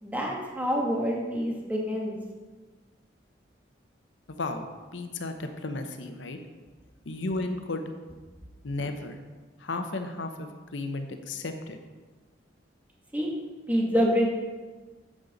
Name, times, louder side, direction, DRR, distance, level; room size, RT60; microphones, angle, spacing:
voice 1, 0.0-2.2 13.1-13.3 13.7-14.2, equal, 10° right, -2 dB, 1.3 m, -26 dB
voice 2, 4.3-4.7 4.9-6.4 7.0-7.9 8.6-9.2 9.6-11.8, left 2 dB, 85° left, 6 dB, 0.8 m, -34 dB
8.9 x 7.4 x 4.0 m, 1.3 s
head